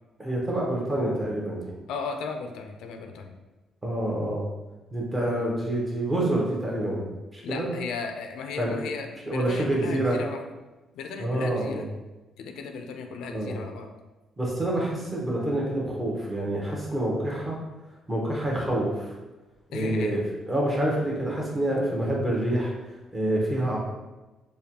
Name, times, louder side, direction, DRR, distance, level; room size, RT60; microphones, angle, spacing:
voice 1, 0.2-1.7 3.8-4.4 4.9-7.7 8.6-8.7 9.3-10.2 11.2-11.8 13.3-13.6 14.4-17.6 18.1-19.1 19.7-20.2 20.5-22.7 23.1-23.8, right 1 dB, 15° right, -4 dB, 0.8 m, -27 dB
voice 2, 1.9-3.3 7.4-10.5 10.9-11.9 12.4-13.9 19.7-20.2, left 5 dB, 85° left, 4 dB, 0.4 m, -35 dB
5.0 x 2.2 x 2.8 m, 1.1 s
cardioid pair, 165°, 0 cm